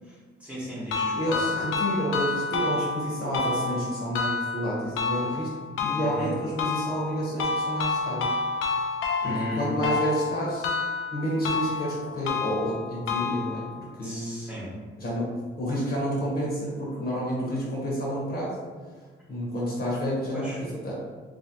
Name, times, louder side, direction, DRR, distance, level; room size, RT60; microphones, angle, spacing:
voice 1, 0.4-1.4 6.0-6.3 9.2-9.7 14.0-14.7 20.3-20.6, equal, 5° right, -7 dB, 1.2 m, -35 dB
sound 1, 0.9-13.9, left 4 dB, 90° left, 0.4 m, -30 dB
voice 2, 1.1-5.5 5.8-8.3 9.2-10.6 11.1-13.6 14.0-14.4 15.0-15.3 15.6-18.5 19.3-20.9, equal, 50° left, -6 dB, 1.2 m, -29 dB
3.0 x 2.7 x 2.8 m, 1.5 s
cardioid pair, 90°, 20 cm